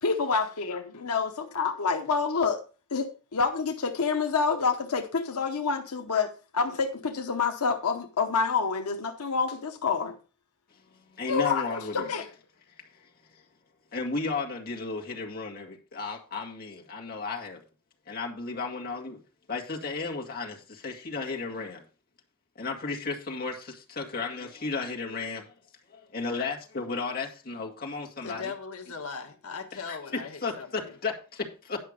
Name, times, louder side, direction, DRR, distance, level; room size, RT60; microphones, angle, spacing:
voice 1, 0.0-2.6 2.9-10.2 11.3-12.3, left 5 dB, 85° left, 4 dB, 0.9 m, -28 dB
voice 2, 11.1-12.1 13.9-17.6 18.1-19.2 19.5-21.8 22.6-25.5 25.9-28.5 29.9-31.8, left 4 dB, 40° left, -1 dB, 2.0 m, -34 dB
voice 3, 28.2-30.9, left 5 dB, 70° left, 4 dB, 1.4 m, -39 dB
10.5 x 5.8 x 5.1 m, 0.35 s
head